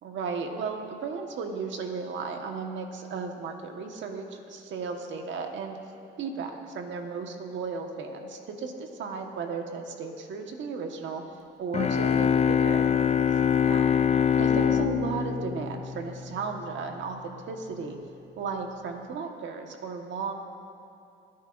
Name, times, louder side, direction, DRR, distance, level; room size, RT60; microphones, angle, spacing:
voice 1, 0.0-5.8 6.2-11.2 11.6-13.1 13.6-13.9 14.4-18.0 18.4-20.3, right 4 dB, 70° right, 3 dB, 1.5 m, -35 dB
sound 1, 11.7-16.4, left 7 dB, 35° left, 0.5 m, -24 dB
25.0 x 10.0 x 2.6 m, 2.8 s
cardioid pair, 90°, 20 cm